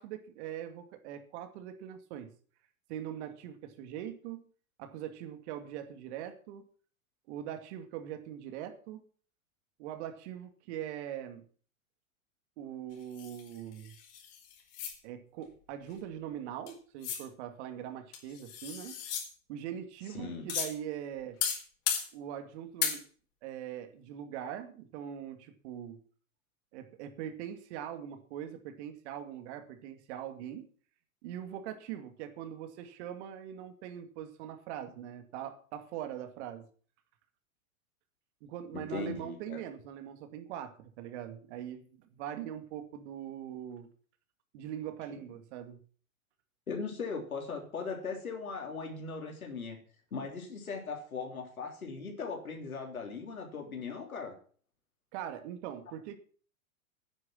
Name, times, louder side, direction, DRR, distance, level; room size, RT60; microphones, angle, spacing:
voice 1, 0.0-2.3 2.9-4.5 4.8-6.7 7.3-9.0 9.8-11.4 12.6-13.9 15.0-19.0 19.5-21.4 22.1-23.0 23.4-26.0 26.7-30.7 31.2-36.7 38.4-43.9 44.5-45.8 55.1-56.2, right 10 dB, 50° right, 8 dB, 2.3 m, -42 dB
sound 1, 13.2-14.9 16.7-16.8 17.0-17.2 18.1-19.3 20.5-20.7 21.4-22.1 22.8-23.0, left 8 dB, 45° left, 4.6 m, -35 dB
voice 2, 20.1-20.5 38.7-39.6 45.1-45.2 46.7-49.8 50.1-54.4, left 5 dB, 85° left, 2 dB, 3.5 m, -39 dB
10.0 x 9.9 x 7.4 m, 0.43 s
hypercardioid pair, 105°, 42 cm